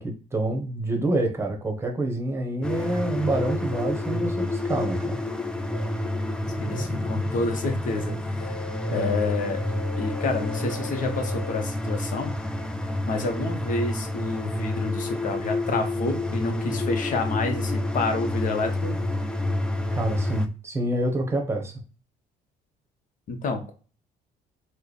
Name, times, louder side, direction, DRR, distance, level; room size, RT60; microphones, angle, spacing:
voice 1, 0.0-5.2 8.9-9.2 19.9-21.8, right 2 dB, 15° right, 3 dB, 0.9 m, -27 dB
sound 1, 2.6-20.5, left 1 dB, 5° left, 0.4 m, -29 dB
sound 2, 2.7-2.8 3.7-3.8 4.7-4.8 5.7-5.8 6.7-6.8 7.3-7.4 7.9-8.0 8.4-11.6, left 5 dB, 25° left, 1.4 m, -39 dB
voice 2, 6.6-8.6 8.9-9.6 10.0-12.3 13.1-18.9 23.3-23.7, left 3 dB, 50° left, 5 dB, 0.9 m, -29 dB
3.2 x 2.1 x 4.0 m, 0.37 s
cardioid pair, 110°, 17 cm